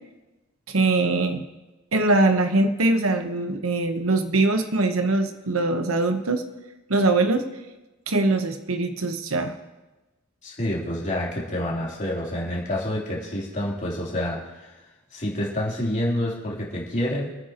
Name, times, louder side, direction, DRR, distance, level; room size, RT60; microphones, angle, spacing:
voice 1, 0.7-1.4 1.9-6.4 6.9-7.4 8.1-9.5, right 2 dB, 90° right, 7 dB, 1.1 m, -22 dB
voice 2, 10.4-14.8 15.1-17.3, left 1 dB, 40° left, -4 dB, 3.5 m, -28 dB
27.5 x 9.4 x 3.0 m, 1.1 s
head